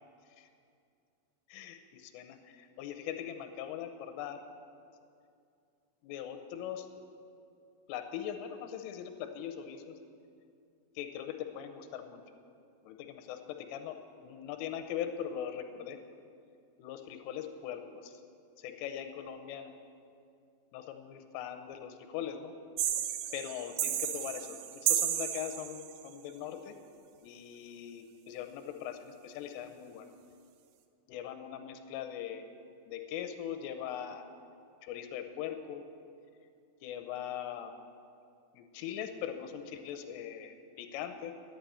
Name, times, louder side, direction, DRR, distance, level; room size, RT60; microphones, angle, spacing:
voice 1, 1.5-4.4 6.0-6.9 7.9-10.0 11.0-12.2 12.8-16.0 16.8-18.2 18.6-19.7 20.7-22.5 23.3-26.8 27.2-30.0 31.1-32.5 32.9-34.3 34.8-35.8 36.8-37.7 38.5-41.3, left 9 dB, 85° left, 6 dB, 3.3 m, -41 dB
sound 1, 22.8-26.0, right 11 dB, 85° right, 3.2 m, -33 dB
11.5 x 8.6 x 9.3 m, 2.4 s
omnidirectional pair, 5.9 m